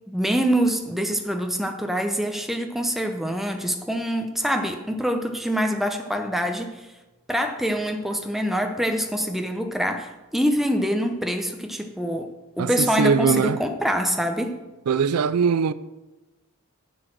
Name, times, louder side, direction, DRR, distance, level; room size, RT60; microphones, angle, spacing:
voice 1, 0.1-6.9 7.3-12.3 12.6-14.6, equal, ahead, 0.8 m, -25 dB
voice 2, 13.0-13.6 14.9-15.7, right 6 dB, 85° right, 0.4 m, -20 dB
10.0 x 6.9 x 6.2 m
head